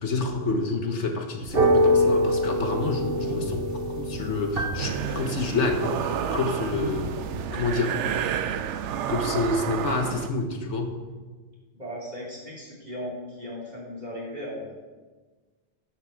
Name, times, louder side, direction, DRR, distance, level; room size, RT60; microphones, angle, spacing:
voice 1, 0.0-7.1 7.5-8.0 9.1-10.9, left 3 dB, 90° left, 4 dB, 1.7 m, -28 dB
sound 1, 1.4-7.5, equal, 55° right, 1.3 m, -26 dB
sound 2, 4.8-10.3, right 8 dB, 85° right, 0.9 m, -30 dB
voice 2, 11.7-14.7, equal, 40° right, -5 dB, 3.1 m, -37 dB
11.0 x 7.9 x 6.4 m, 1.3 s
omnidirectional pair, 1.2 m